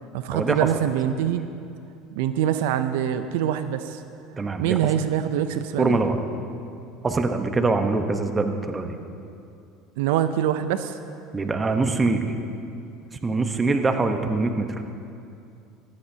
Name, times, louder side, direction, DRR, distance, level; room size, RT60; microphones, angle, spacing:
voice 1, 0.1-1.5 2.2-4.0 4.6-6.0 10.0-11.0, right 10 dB, 80° right, 10 dB, 0.5 m, -24 dB
voice 2, 4.4-4.8 5.8-6.2 7.0-9.0 11.3-12.4 13.2-14.7, right 3 dB, 20° right, 6 dB, 1.0 m, -23 dB
16.0 x 13.5 x 2.8 m, 2.6 s
supercardioid pair, 105°, 0 cm